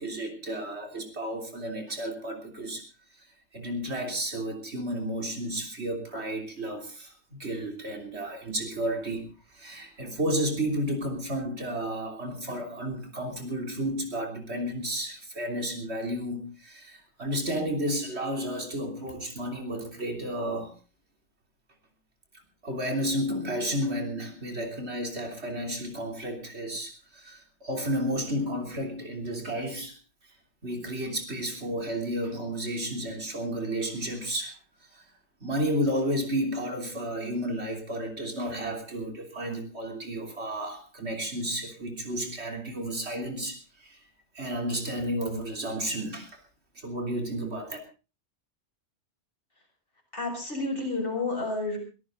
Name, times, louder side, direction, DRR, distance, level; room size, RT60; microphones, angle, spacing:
voice 1, 0.0-2.8 3.5-9.3 9.5-20.7 22.6-30.0 30.6-34.6 34.9-35.0 35.4-44.0 44.4-46.4 46.8-47.8, equal, 75° right, 3 dB, 3.7 m, -32 dB
voice 2, 50.1-51.8, left 2 dB, 55° left, 0 dB, 6.8 m, -30 dB
23.0 x 14.0 x 3.9 m, 0.33 s
omnidirectional pair, 1.1 m